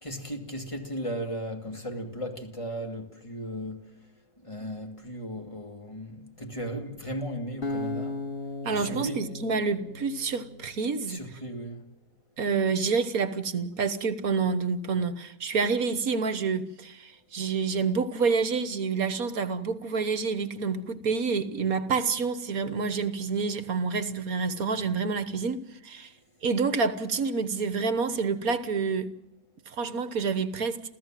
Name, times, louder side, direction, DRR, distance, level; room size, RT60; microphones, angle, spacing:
voice 1, 0.0-3.9 4.4-8.1 8.7-9.3 11.1-11.8, equal, 15° left, 2.7 m, -36 dB
Acoustic guitar, 7.6-10.8, left 2 dB, 35° left, 2.2 m, -36 dB
voice 2, 8.6-11.2 12.4-26.1 26.4-29.1 29.7-30.8, right 5 dB, 60° right, 1.7 m, -28 dB
28.5 x 15.5 x 7.6 m
omnidirectional pair, 1.9 m